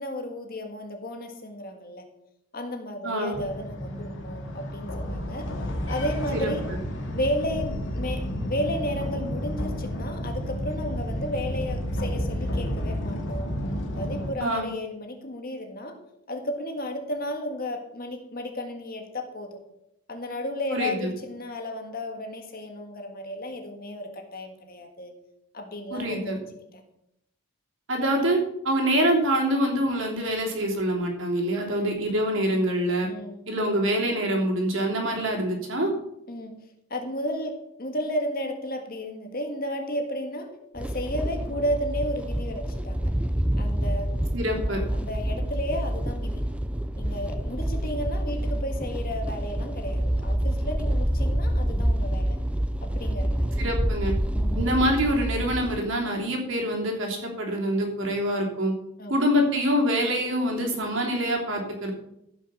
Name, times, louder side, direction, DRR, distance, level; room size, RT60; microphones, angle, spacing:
voice 1, 0.0-2.0 2.5-5.5 5.9-6.6 7.1-8.2 8.5-13.5 13.9-16.0 16.3-19.6 20.1-25.1 25.5-26.5 26.7-26.8 31.6-32.0 33.0-33.4 36.3-36.5 36.9-40.5 40.7-43.1 43.6-44.1 44.7-46.4 47.0-52.4 52.8-53.5 54.3-54.7 59.0-59.1, left 1 dB, 40° left, 4 dB, 1.7 m, -33 dB
voice 2, 3.0-3.4 6.3-6.5 14.4-14.7 20.7-21.1 25.9-26.4 27.9-33.1 33.5-35.9 44.3-44.8 53.6-54.1 54.6-58.7 59.1-61.9, equal, 55° right, 0 dB, 3.3 m, -25 dB
sound 1, 3.3-14.3, equal, 55° left, 2.4 m, -31 dB
sound 2, 40.8-55.8, equal, 5° right, 0.6 m, -27 dB
15.0 x 6.3 x 6.4 m, 0.82 s
head